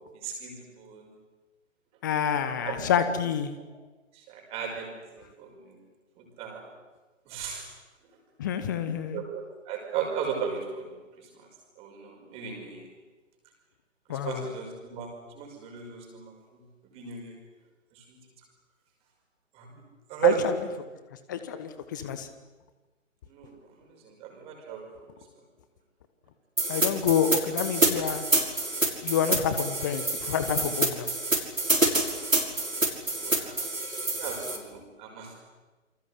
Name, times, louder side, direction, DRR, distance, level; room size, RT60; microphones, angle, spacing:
voice 1, 0.2-1.1 2.6-3.0 4.1-5.8 6.2-6.7 7.3-7.7 9.1-10.9 11.2-11.5 11.8-12.9 14.1-16.3 16.9-17.3 17.9-18.0 19.5-19.7 20.1-20.4 23.3-24.9 33.1-33.6 34.2-35.3, right 9 dB, 15° right, 2 dB, 5.4 m, -35 dB
voice 2, 2.0-3.6 8.4-9.2 14.1-14.5 20.2-20.5 21.3-22.3 26.7-28.2 29.0-31.1, left 8 dB, 15° left, 11 dB, 1.0 m, -28 dB
sound 1, 26.6-34.6, right 2 dB, 80° right, 6.2 m, -27 dB
28.5 x 25.0 x 8.4 m, 1.2 s
figure-of-eight pair, 140°, 39 cm